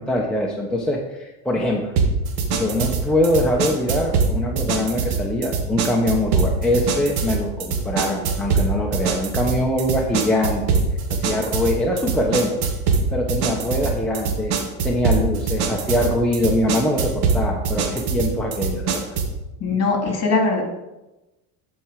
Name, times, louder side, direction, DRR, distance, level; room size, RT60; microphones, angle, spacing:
voice 1, 0.0-1.9 2.5-10.8 11.1-12.5 13.1-14.5 14.8-19.0, left 1 dB, ahead, -2 dB, 1.0 m, -23 dB
sound 1, 2.0-19.4, right 5 dB, 60° right, 1.6 m, -23 dB
voice 2, 19.6-20.6, left 3 dB, 35° left, 2 dB, 2.5 m, -20 dB
11.0 x 4.7 x 4.9 m, 1.0 s
supercardioid pair, 115°, 44 cm